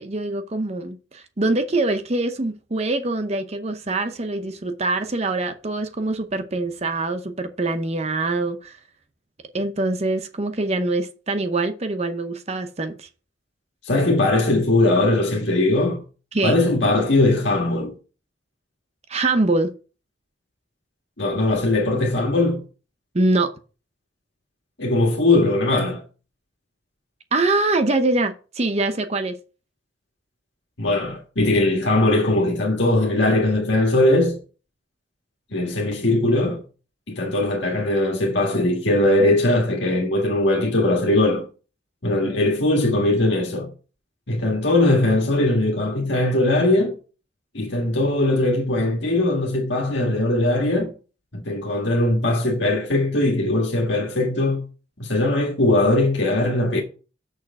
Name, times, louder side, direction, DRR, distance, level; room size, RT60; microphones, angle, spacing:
voice 1, 0.0-8.8 9.5-13.1 16.3-16.6 19.1-19.7 23.1-23.5 27.3-29.4, right 2 dB, 35° right, 0.7 m, -24 dB
voice 2, 13.9-16.0 16.4-17.9 21.2-22.6 24.8-26.0 30.8-34.4 35.5-36.6 37.1-41.5 42.0-43.7 44.3-46.9 47.5-50.9 51.5-54.6 55.0-56.8, left 2 dB, 75° left, 1.8 m, -20 dB
6.5 x 6.4 x 4.7 m
head